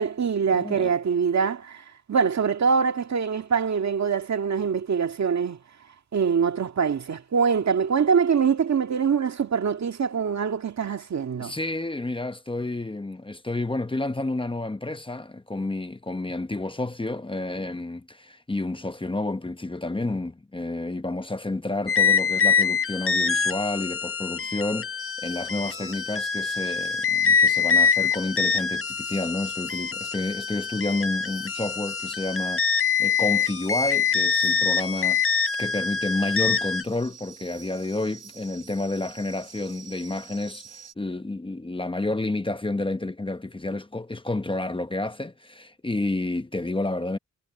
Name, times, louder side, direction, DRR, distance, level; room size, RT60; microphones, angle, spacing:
voice 1, 0.0-5.6 6.1-11.5, right 6 dB, 65° right, 1.9 m, -24 dB
voice 2, 0.6-0.9 11.4-47.2, left 2 dB, 15° left, 1.0 m, -30 dB
sound 1, 21.9-36.8, left 6 dB, 45° left, 1.2 m, -24 dB
sound 2, 25.0-40.9, right 6 dB, 85° right, 5.1 m, -46 dB
cardioid pair, 85°, 30 cm